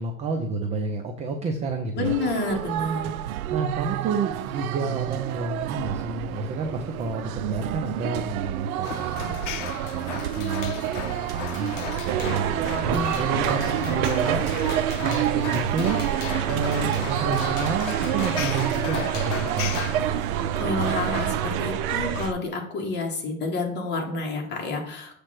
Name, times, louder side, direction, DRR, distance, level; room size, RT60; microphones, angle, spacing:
voice 1, 0.0-2.1 3.5-14.4 15.0-16.0 16.5-19.9, right 4 dB, 15° right, 5 dB, 0.4 m, -30 dB
voice 2, 1.9-3.1 12.9-13.1 13.8-13.9 20.5-25.2, left 3 dB, 25° left, 1 dB, 1.7 m, -29 dB
sound 1, 2.0-21.5, right 13 dB, 80° right, 0.5 m, -30 dB
sound 2, 8.8-20.0, left 10 dB, 60° left, 0.8 m, -36 dB
sound 3, 12.1-22.3, right 8 dB, 45° right, 0.8 m, -28 dB
7.2 x 3.4 x 5.8 m, 0.63 s
hypercardioid pair, 125°, 42 cm